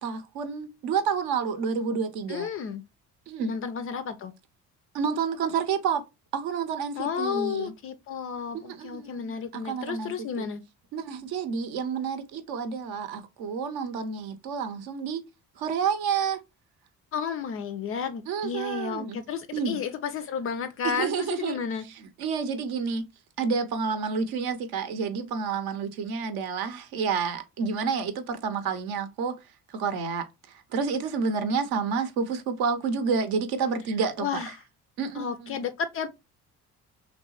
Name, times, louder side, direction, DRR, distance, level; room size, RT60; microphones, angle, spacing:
voice 1, 0.0-2.5 3.3-3.5 4.9-6.0 6.3-7.7 8.5-10.5 10.9-15.2 15.6-16.4 18.3-19.2 19.5-19.8 20.8-21.6 22.0-23.1 23.4-29.4 29.7-34.3 35.0-35.5, right 5 dB, 50° right, 0.7 m, -29 dB
voice 2, 2.3-2.8 3.5-4.3 7.0-10.6 17.1-21.9 34.2-34.5 35.1-36.1, left 7 dB, 30° left, 0.4 m, -32 dB
3.3 x 2.9 x 2.8 m
figure-of-eight pair, 45°, 46 cm